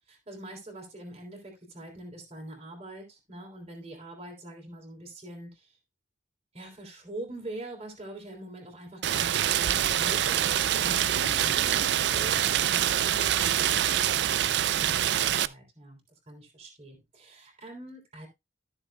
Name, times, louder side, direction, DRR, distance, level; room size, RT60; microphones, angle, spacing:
voice 1, 0.1-5.8 6.5-11.9 12.1-16.0 16.3-18.3, right 1 dB, 30° right, 3.3 m, -44 dB
Rain, 9.0-15.5, right 11 dB, 55° right, 0.4 m, -25 dB
Wild animals, 10.6-14.8, left 3 dB, 90° left, 1.2 m, -46 dB
14.0 x 7.1 x 2.2 m
head